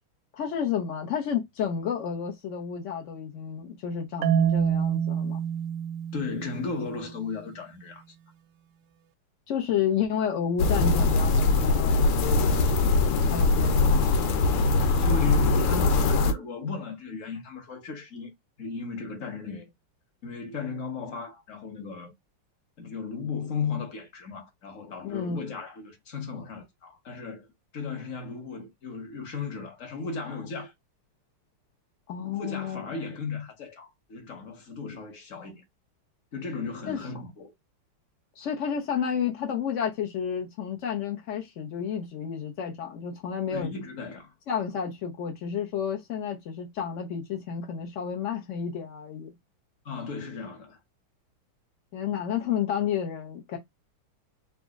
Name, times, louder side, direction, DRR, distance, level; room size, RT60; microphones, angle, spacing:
voice 1, 0.3-5.4 9.5-12.7 13.3-14.4 25.0-25.5 32.1-32.8 36.9-37.0 38.4-43.7 44.5-49.3 51.9-53.6, left 8 dB, 70° left, 0.7 m, -31 dB
Marimba xylophone, 4.2-7.2, right 9 dB, 75° right, 1.1 m, -27 dB
voice 2, 6.1-8.0 14.8-18.3 18.6-19.7 20.2-22.1 22.8-27.5 27.7-30.7 32.2-35.6 36.3-37.5 43.5-44.3 49.8-50.8, left 4 dB, 45° left, 1.1 m, -35 dB
sound 1, 10.6-16.3, left 3 dB, 85° left, 1.6 m, -22 dB
4.1 x 2.4 x 3.4 m
omnidirectional pair, 2.4 m